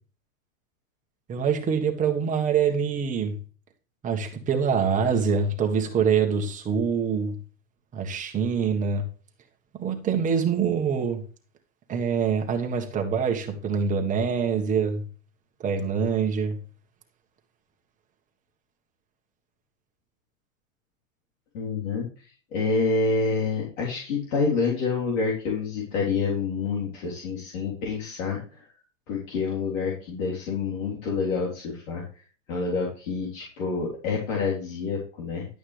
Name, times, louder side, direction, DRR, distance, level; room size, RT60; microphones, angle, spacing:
voice 1, 1.3-3.4 4.0-7.4 7.9-9.1 9.8-11.2 11.9-15.0 15.6-16.6, right 6 dB, 20° right, 1.5 m, -25 dB
voice 2, 21.5-22.3 22.5-28.7 29.1-32.0 32.5-35.5, left 4 dB, 70° left, 3.7 m, -27 dB
11.5 x 8.7 x 3.4 m
supercardioid pair, 150°, 40 cm